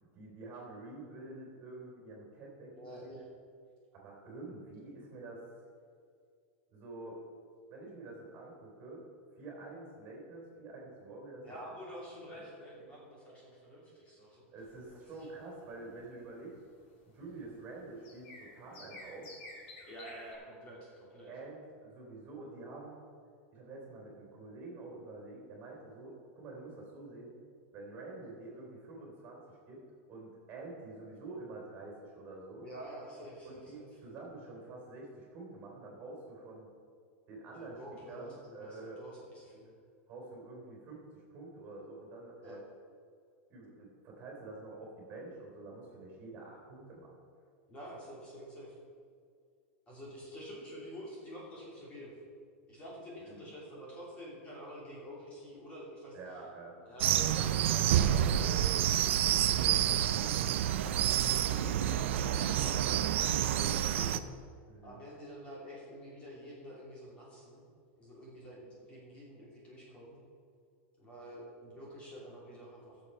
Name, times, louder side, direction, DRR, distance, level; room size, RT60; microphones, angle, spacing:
voice 1, 0.1-2.7 3.0-3.2 3.9-5.4 6.7-7.2 7.7-9.0 9.3-11.5 12.3-12.5 14.5-16.6 17.1-19.4 21.3-23.1 23.5-27.3 27.7-29.8 30.1-32.7 33.4-36.7 37.3-37.8 38.1-39.0 40.1-42.6 43.5-47.1 53.3-53.5 56.1-56.8 64.7-65.0, right 2 dB, 25° right, -1 dB, 3.4 m, -48 dB
voice 2, 2.8-3.2 11.4-14.4 15.1-15.3 19.8-21.4 32.6-33.9 37.5-39.7 42.4-42.6 47.7-48.8 49.9-52.2 52.7-56.2 56.8-58.6 59.4-60.4 61.5-64.2 64.8-67.7 68.0-70.2 71.0-73.0, equal, 20° left, -5 dB, 3.0 m, -48 dB
sound 1, 14.6-20.3, left 2 dB, 55° left, 3.5 m, -53 dB
sound 2, 57.0-64.2, right 11 dB, 70° right, 0.6 m, -28 dB
15.0 x 7.3 x 5.6 m, 2.2 s
supercardioid pair, 175°, 7 cm